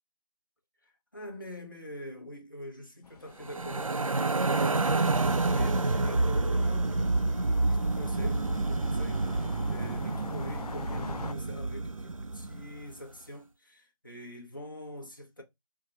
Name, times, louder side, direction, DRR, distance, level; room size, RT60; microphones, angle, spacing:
voice 1, 0.8-15.4, left 1 dB, 35° left, 0.8 m, -45 dB
sound 1, 3.0-11.3, left 4 dB, 85° left, 0.4 m, -45 dB
sound 2, 3.4-12.7, right 3 dB, 60° right, 0.4 m, -28 dB
4.5 x 2.1 x 4.2 m
figure-of-eight pair, 170°, 19 cm